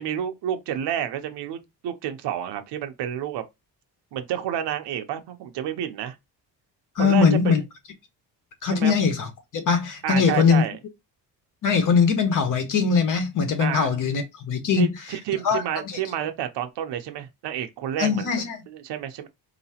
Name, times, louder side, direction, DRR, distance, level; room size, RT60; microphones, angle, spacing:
voice 1, 0.0-3.4 4.1-6.2 7.0-7.5 8.7-8.9 10.0-10.8 13.6-13.9 14.7-18.3 18.7-19.3, right 10 dB, 80° right, 0.9 m, -30 dB
voice 2, 7.0-7.6 8.6-10.6 11.6-14.9 15.4-16.0 18.0-18.6, left 5 dB, 50° left, 1.2 m, -21 dB
4.7 x 3.0 x 2.8 m
cardioid pair, 165°, 40 cm